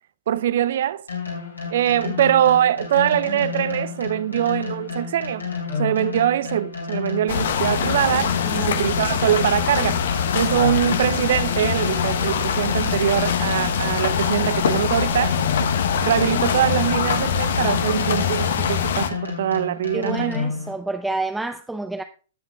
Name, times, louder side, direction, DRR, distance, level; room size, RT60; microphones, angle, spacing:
voice 1, 0.3-1.0 1.7-5.5 5.8-10.0 10.3-15.4 16.0-20.3, right 11 dB, 50° right, 0.5 m, -22 dB
sound 1, 1.1-20.7, left 5 dB, 80° left, 4.2 m, -31 dB
sound 2, 7.3-19.1, left 7 dB, 55° left, 0.9 m, -23 dB
voice 2, 8.4-8.9 19.9-22.0, right 2 dB, 5° right, 0.5 m, -29 dB
17.0 x 7.4 x 2.3 m
figure-of-eight pair, 110°, 0 cm